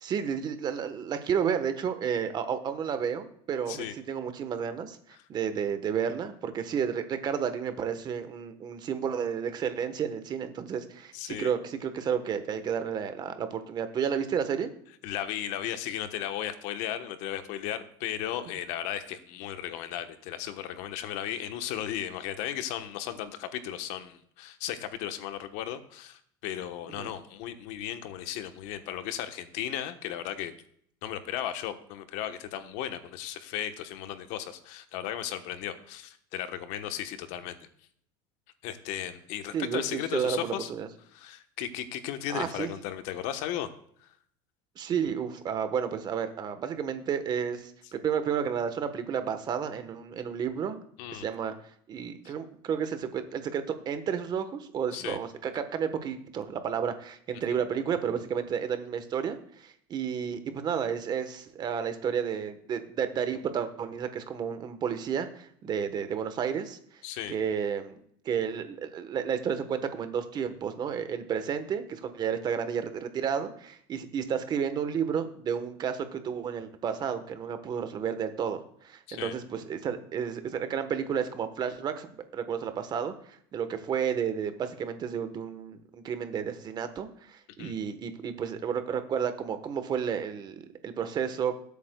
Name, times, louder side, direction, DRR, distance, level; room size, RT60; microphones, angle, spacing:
voice 1, 0.0-5.0 5.3-14.7 26.9-27.1 39.5-40.9 42.3-42.7 44.8-50.8 51.1-51.5 51.9-66.8 67.3-68.0 68.2-91.5, right 7 dB, 30° right, 9 dB, 1.1 m, -31 dB
voice 2, 11.1-11.5 15.0-30.5 31.0-37.6 38.6-40.7 41.1-43.7 44.0-44.1 51.0-51.3 52.2-52.3 54.9-55.2 67.0-67.4 79.1-79.3 87.6-87.7, left 11 dB, 65° left, 9 dB, 1.1 m, -35 dB
20.5 x 8.4 x 2.3 m, 0.65 s
supercardioid pair, 140°, 13 cm